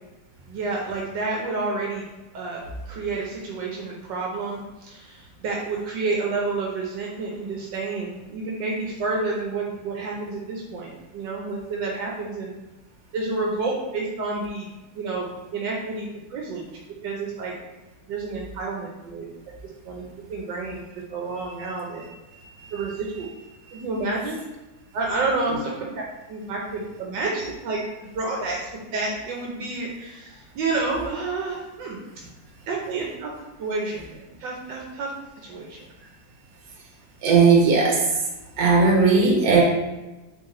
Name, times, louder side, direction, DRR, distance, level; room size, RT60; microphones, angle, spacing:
voice 1, 0.5-2.0 2.3-12.5 13.1-14.7 14.9-16.6 17.0-17.5 18.1-19.3 19.9-20.0 20.3-20.8 21.1-22.0 22.7-23.3 23.7-24.4 24.9-26.0 26.3-32.0 32.7-33.3 33.6-35.1 35.4-35.9, right 3 dB, 75° right, -2 dB, 1.3 m, -29 dB
voice 2, 37.2-38.0 38.6-39.6, right 4 dB, 55° right, -1 dB, 1.3 m, -17 dB
3.8 x 3.5 x 4.0 m, 1.1 s
omnidirectional pair, 2.0 m